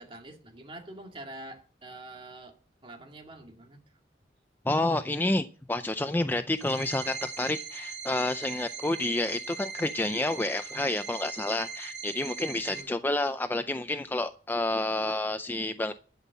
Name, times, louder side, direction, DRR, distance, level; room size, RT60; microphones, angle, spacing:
voice 1, 0.0-3.8 12.5-13.0, right 2 dB, 30° right, 2.0 m, -46 dB
voice 2, 4.7-15.9, left 2 dB, 10° left, 0.4 m, -29 dB
sound 1, 6.6-12.8, right 6 dB, 75° right, 3.1 m, -40 dB
12.0 x 5.6 x 8.3 m
head